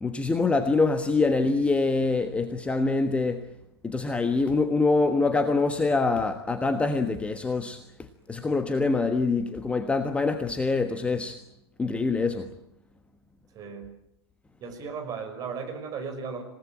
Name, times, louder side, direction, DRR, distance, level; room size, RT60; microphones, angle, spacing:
voice 1, 0.0-3.4 3.8-7.8 8.3-11.4 11.8-12.5, left 3 dB, 10° left, 8 dB, 1.3 m, -25 dB
voice 2, 13.5-13.9 14.6-16.4, right 5 dB, 25° right, 5 dB, 5.9 m, -36 dB
27.5 x 18.0 x 9.0 m, 0.80 s
figure-of-eight pair, 105°, 14 cm